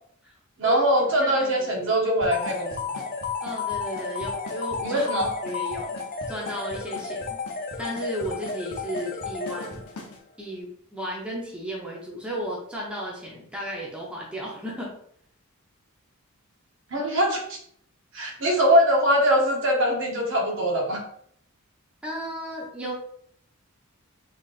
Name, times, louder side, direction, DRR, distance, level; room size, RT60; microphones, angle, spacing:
voice 1, 0.6-2.8 4.8-5.3 16.9-17.6 18.1-21.0, equal, 55° right, 0 dB, 0.9 m, -22 dB
voice 2, 1.2-1.9 3.4-5.1 5.4-6.0 6.3-7.4 7.8-9.8 10.4-14.9 22.0-22.9, right 1 dB, 5° right, -3 dB, 0.6 m, -34 dB
Drum kit / Snare drum / Bass drum, 2.2-10.2, left 1 dB, 90° left, 0.8 m, -40 dB
sound 1, 2.3-10.1, left 5 dB, 40° left, 0.4 m, -33 dB
3.9 x 3.2 x 2.4 m, 0.66 s
head